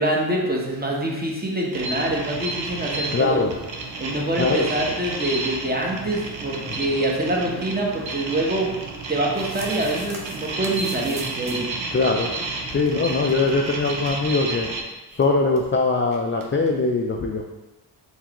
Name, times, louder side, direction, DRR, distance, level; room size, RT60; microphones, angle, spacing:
voice 1, 0.0-3.4 4.0-8.7 9.1-11.7, right 1 dB, 20° right, -1 dB, 0.9 m, -25 dB
sound 1, 1.7-14.8, right 3 dB, 85° right, 0.7 m, -31 dB
voice 2, 3.1-3.5 4.4-4.7 6.7-6.8 11.9-12.3 12.7-14.7 15.1-17.4, left 3 dB, 30° left, 1 dB, 0.4 m, -22 dB
sound 2, 9.2-11.8 12.1-12.2 12.3-12.4 12.8-14.7 14.9-15.0 15.2-15.7 16.1-16.7, right 2 dB, 50° right, 0.8 m, -42 dB
4.6 x 3.3 x 3.0 m, 1.0 s
wide cardioid pair, 70°, 44 cm